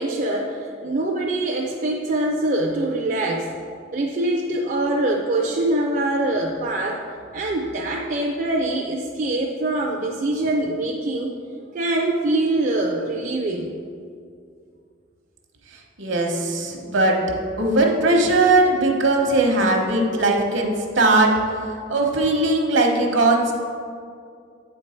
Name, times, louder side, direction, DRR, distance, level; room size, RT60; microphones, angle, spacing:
voice 1, 0.0-3.5 3.9-7.0 7.3-11.3 11.6-13.7, right 2 dB, 45° right, 0 dB, 0.4 m, -24 dB
voice 2, 16.0-17.2 17.6-21.3 21.9-23.5, right 2 dB, 65° right, 1 dB, 1.0 m, -19 dB
7.9 x 4.5 x 4.4 m, 2.3 s
head